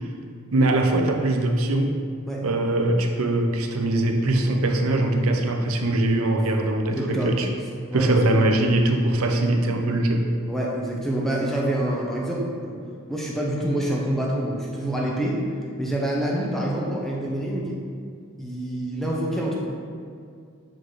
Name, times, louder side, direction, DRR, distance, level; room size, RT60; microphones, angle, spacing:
voice 1, 0.5-2.0 2.4-7.5 7.9-10.3, right 1 dB, 75° right, 3 dB, 0.6 m, -22 dB
voice 2, 6.9-7.3 7.9-8.2 10.5-12.8 13.1-15.4 15.8-17.8 18.4-19.5, right 1 dB, ahead, -4 dB, 0.7 m, -26 dB
7.6 x 4.0 x 3.2 m, 2.3 s
head